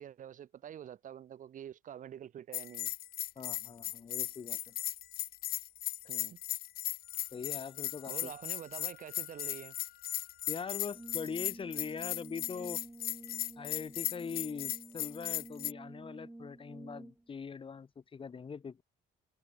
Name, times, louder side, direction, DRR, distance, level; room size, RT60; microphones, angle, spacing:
voice 1, 0.0-2.9 6.1-6.4 8.1-9.7, right 10 dB, 50° right, 2.0 m, -46 dB
Bell, 2.5-15.7, left 14 dB, 60° left, 0.7 m, -37 dB
voice 2, 3.4-4.7 7.3-8.3 10.5-12.8 13.6-18.8, left 5 dB, 30° left, 2.6 m, -42 dB
Wind instrument woodwind instrument, 7.0-11.2, left 17 dB, 80° left, 7.3 m, -61 dB
Brass instrument, 10.9-17.3, right 1 dB, 10° right, 4.6 m, -50 dB
cardioid pair, 110°, 17 cm